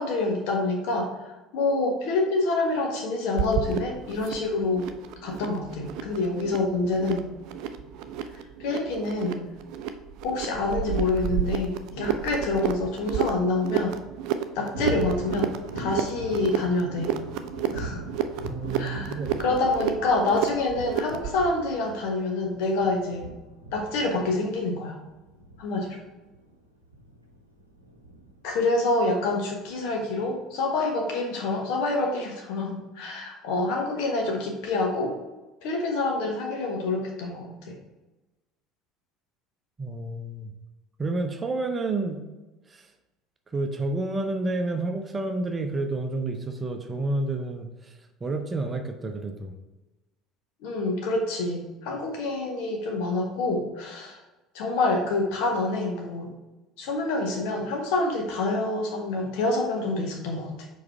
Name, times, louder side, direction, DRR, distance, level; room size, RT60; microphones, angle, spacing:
voice 1, 0.0-4.9 5.2-7.2 8.6-9.4 10.2-14.0 14.5-17.2 17.7-18.0 18.8-23.3 23.7-25.0 25.6-26.0 28.4-35.1 35.6-37.8 50.6-54.2 54.5-56.3 56.8-60.7, left 2 dB, 60° left, 1 dB, 1.2 m, -27 dB
sound 1, 3.4-21.4, right 9 dB, 55° right, 0.4 m, -32 dB
Thunder, 14.7-28.7, right 1 dB, 85° right, 0.7 m, -40 dB
voice 2, 18.5-19.6 39.8-40.5 41.0-42.2 42.7-42.9 43.5-49.5, right 2 dB, 25° right, 5 dB, 0.7 m, -30 dB
4.9 x 4.1 x 4.8 m, 1.1 s
figure-of-eight pair, 65°, 0 cm